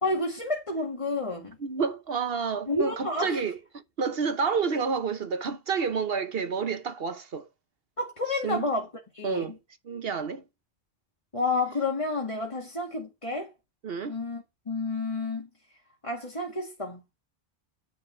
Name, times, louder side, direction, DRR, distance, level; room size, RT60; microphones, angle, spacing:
voice 1, 0.0-1.6 2.7-3.4 8.0-8.9 9.1-9.5 11.3-13.5 14.1-15.5 16.0-17.0, left 2 dB, 30° left, 2.0 m, -30 dB
voice 2, 1.6-7.5 8.4-8.6 9.2-9.5 9.8-10.4 13.8-14.2, right 5 dB, 65° right, 1.1 m, -29 dB
10.5 x 4.7 x 5.7 m
omnidirectional pair, 1.1 m